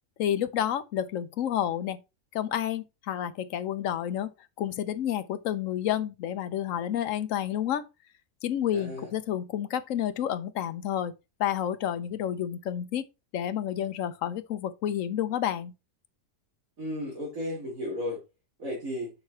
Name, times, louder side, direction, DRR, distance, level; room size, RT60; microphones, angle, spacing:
voice 1, 0.2-2.0 2.3-4.3 4.6-7.9 8.4-11.1 11.4-13.0 13.3-15.7, left 10 dB, 65° left, 1.0 m, -30 dB
voice 2, 8.7-9.1 16.8-18.2 18.6-19.1, left 1 dB, 65° right, 3.1 m, -34 dB
6.5 x 5.6 x 4.1 m
omnidirectional pair, 1.5 m